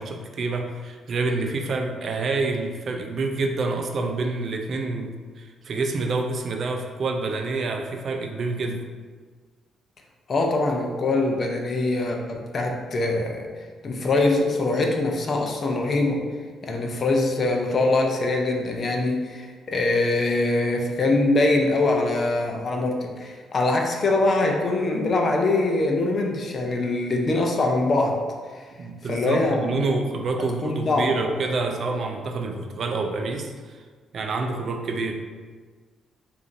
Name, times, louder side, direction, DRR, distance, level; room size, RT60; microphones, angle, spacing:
voice 1, 0.0-8.9 28.8-33.8 34.1-35.2, right 3 dB, 55° right, 4 dB, 0.4 m, -27 dB
voice 2, 10.3-13.5 13.8-16.3 16.6-28.2 28.5-28.7 29.1-30.0 30.6-31.2, left 2 dB, 45° left, 2 dB, 0.6 m, -23 dB
4.9 x 2.6 x 2.6 m, 1.5 s
cardioid pair, 90°, 0 cm